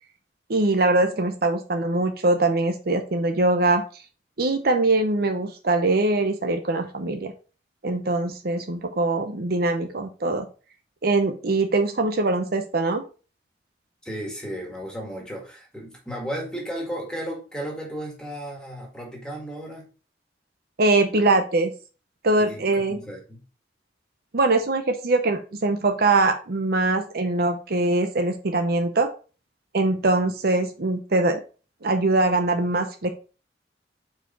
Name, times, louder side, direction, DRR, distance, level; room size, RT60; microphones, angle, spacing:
voice 1, 0.5-3.8 4.4-7.3 7.8-10.5 11.0-13.0 20.8-21.7 22.2-23.0 24.3-29.1 29.7-31.4 31.8-33.1, right 2 dB, 55° right, 6 dB, 0.7 m, -22 dB
voice 2, 14.0-19.9 22.4-22.6 22.9-23.4, equal, 5° left, -1 dB, 1.9 m, -34 dB
4.9 x 4.6 x 4.3 m, 0.35 s
head